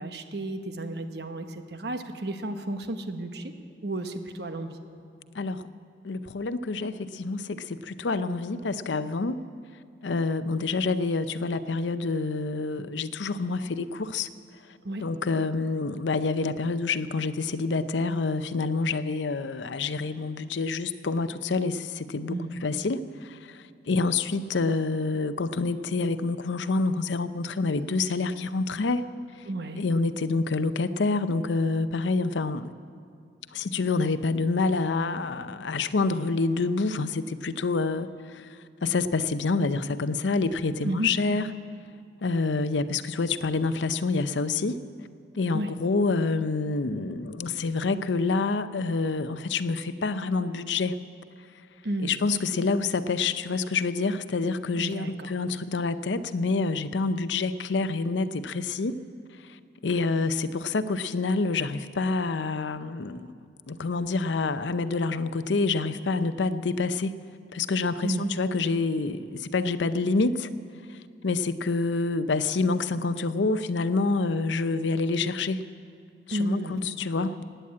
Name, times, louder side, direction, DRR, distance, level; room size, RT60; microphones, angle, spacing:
voice 1, 0.0-3.5 3.8-4.8 14.8-15.0 22.3-22.5 29.5-29.8 40.8-41.1 45.5-45.7 51.8-52.2 54.8-55.3 68.0-68.3 76.3-76.8, right 1 dB, 65° right, 7 dB, 1.0 m, -32 dB
voice 2, 6.0-9.4 10.0-14.3 15.0-29.0 29.7-32.7 33.5-41.5 42.2-44.8 45.3-50.9 52.0-59.0 59.5-59.6 59.8-63.3 63.7-67.2 67.5-70.5 70.9-71.0 71.2-75.6 76.3-77.4, left 3 dB, 85° left, 12 dB, 0.6 m, -27 dB
16.0 x 10.0 x 8.6 m, 2.3 s
head